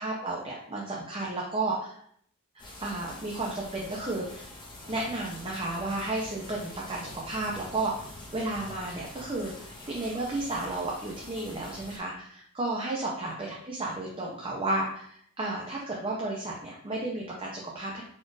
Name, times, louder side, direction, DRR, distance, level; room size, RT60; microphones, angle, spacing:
voice 1, 0.0-2.0 2.5-4.4 4.9-18.0, right 2 dB, 25° right, -3 dB, 0.6 m, -33 dB
sound 1, 2.6-12.0, left 1 dB, 20° left, 0.9 m, -45 dB
4.3 x 2.5 x 4.6 m, 0.66 s
head